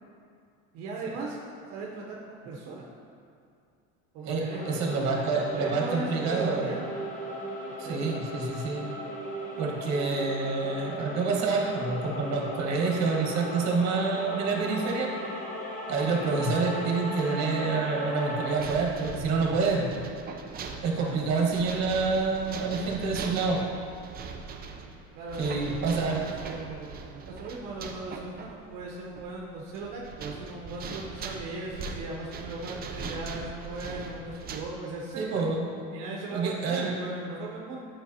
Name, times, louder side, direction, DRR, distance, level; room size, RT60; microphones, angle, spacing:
voice 1, 0.7-1.4 1.7-2.9 4.1-5.2 5.5-6.9 7.8-8.0 20.9-21.2 25.1-35.4 35.9-37.8, right 3 dB, 70° right, -3 dB, 1.0 m, -38 dB
voice 2, 4.2-6.7 7.8-8.9 9.6-15.1 15.9-20.0 20.8-23.6 25.4-26.2 35.2-35.9 36.3-36.9, right 4 dB, 50° right, -1 dB, 1.4 m, -27 dB
sound 1, 4.5-18.6, equal, 20° left, 1.1 m, -37 dB
sound 2, 18.6-34.6, right 4 dB, 25° right, 0.5 m, -40 dB
9.1 x 5.9 x 2.8 m, 2.4 s
cardioid pair, 140°, 35 cm